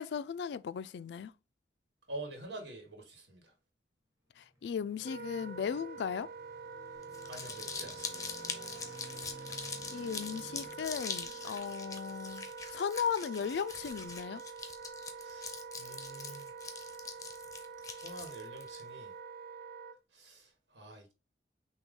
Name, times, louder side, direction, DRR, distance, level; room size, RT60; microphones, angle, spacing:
voice 1, 0.0-1.3 4.4-6.3 9.9-14.4, left 7 dB, 70° left, 0.3 m, -36 dB
voice 2, 2.1-3.5 7.3-8.3 15.1-16.5 18.0-19.1 20.1-21.1, right 1 dB, 75° right, 1.6 m, -47 dB
sound 1, 4.4-12.8, equal, 15° right, 1.0 m, -55 dB
Wind instrument woodwind instrument, 5.0-20.0, right 5 dB, 55° right, 0.6 m, -46 dB
Crumpling crinkling, 7.0-18.8, left 5 dB, 20° left, 0.6 m, -43 dB
6.0 x 2.3 x 3.6 m
head